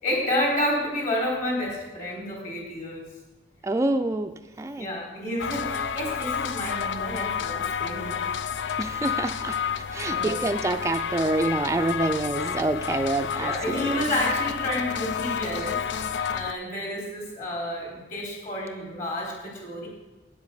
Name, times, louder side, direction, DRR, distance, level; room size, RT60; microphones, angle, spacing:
voice 1, 0.0-3.1 4.7-8.2 10.1-10.4 13.4-19.9, left 1 dB, 45° left, -2 dB, 4.0 m, -30 dB
voice 2, 3.6-4.3 4.6-4.9 8.8-9.6 9.9-14.0, right 2 dB, 15° right, 7 dB, 0.3 m, -26 dB
sound 1, 5.4-16.5, left 7 dB, 85° left, 0.5 m, -30 dB
9.2 x 8.0 x 6.8 m, 1.1 s
head